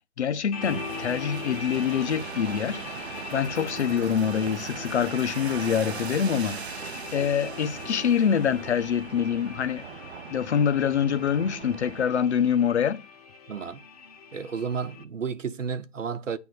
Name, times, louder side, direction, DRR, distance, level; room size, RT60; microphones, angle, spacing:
voice 1, 0.2-2.8 3.3-9.8 10.3-13.0, left 8 dB, 65° left, 0.7 m, -25 dB
sound 1, 0.5-15.0, left 6 dB, 30° left, 0.9 m, -41 dB
sound 2, 0.6-12.1, right 8 dB, 60° right, 0.7 m, -39 dB
sound 3, 3.1-6.4 6.9-7.8 8.1-8.4, left 1 dB, ahead, 0.5 m, -54 dB
voice 2, 13.5-13.8 14.3-16.4, right 6 dB, 85° right, 1.0 m, -32 dB
8.8 x 3.6 x 6.2 m
figure-of-eight pair, 145°, 37 cm